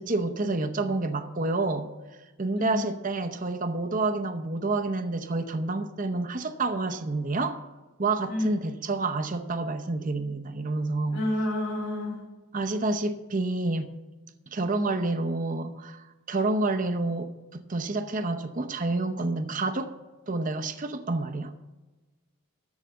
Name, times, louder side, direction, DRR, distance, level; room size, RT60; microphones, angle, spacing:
voice 1, 0.0-1.9 2.4-7.6 8.0-11.2 12.5-13.9 14.5-19.9 20.3-21.5, right 2 dB, 40° right, 7 dB, 0.7 m, -29 dB
voice 2, 11.1-12.2, left 1 dB, 70° left, -3 dB, 3.6 m, -29 dB
13.5 x 4.9 x 7.5 m, 1.2 s
head